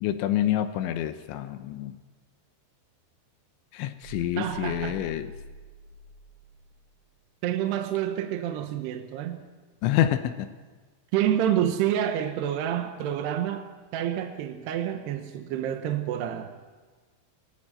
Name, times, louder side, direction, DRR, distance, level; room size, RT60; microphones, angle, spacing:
voice 1, 0.0-1.9 3.7-5.3 9.8-10.5, left 12 dB, 80° left, 10 dB, 3.1 m, -27 dB
sound 1, 4.0-6.7, right 2 dB, 90° right, 4.5 m, -45 dB
voice 2, 4.4-5.0 7.4-9.4 11.1-13.7 13.9-16.5, right 10 dB, 70° right, 5 dB, 2.8 m, -28 dB
22.0 x 16.5 x 9.1 m, 1.4 s
omnidirectional pair, 5.6 m